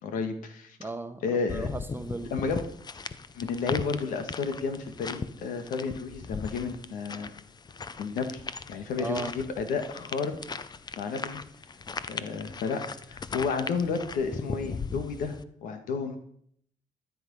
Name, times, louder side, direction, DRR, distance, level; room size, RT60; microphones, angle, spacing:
voice 1, 0.0-0.8 1.2-1.7 2.3-2.7 3.3-7.3 8.0-8.4 8.7-10.3 11.0-11.4 12.1-12.8 13.1-15.3 15.6-16.2, left 5 dB, 80° left, 8 dB, 1.7 m, -31 dB
voice 2, 0.8-1.2 1.5-2.3 9.0-9.3, right 2 dB, 15° right, 8 dB, 1.2 m, -35 dB
sound 1, 1.5-15.4, left 5 dB, 30° left, 0.7 m, -38 dB
13.0 x 8.1 x 5.5 m, 0.65 s
cardioid pair, 80°, 14 cm